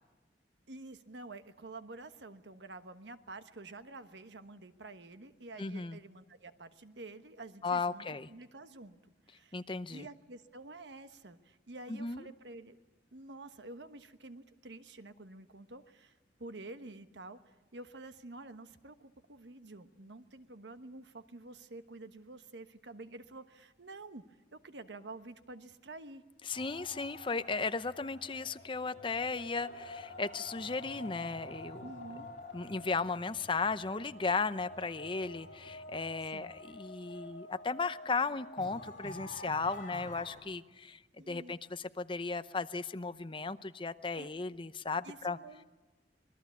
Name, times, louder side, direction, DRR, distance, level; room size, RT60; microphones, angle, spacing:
voice 1, 0.7-9.6 9.9-12.8 13.1-16.1 16.4-24.2 24.5-26.2 31.8-32.3 36.3-36.5 41.2-41.5 44.2-44.3 45.0-45.7, right 2 dB, 85° right, 10 dB, 1.2 m, -49 dB
voice 2, 5.6-6.0 7.6-8.3 9.5-10.1 11.9-12.2 26.5-31.8 32.5-41.0 41.3-45.4, left 4 dB, 30° left, 12 dB, 0.7 m, -35 dB
sound 1, 26.5-40.4, left 2 dB, 45° left, 6.5 m, -48 dB
26.0 x 20.5 x 8.3 m, 1.2 s
head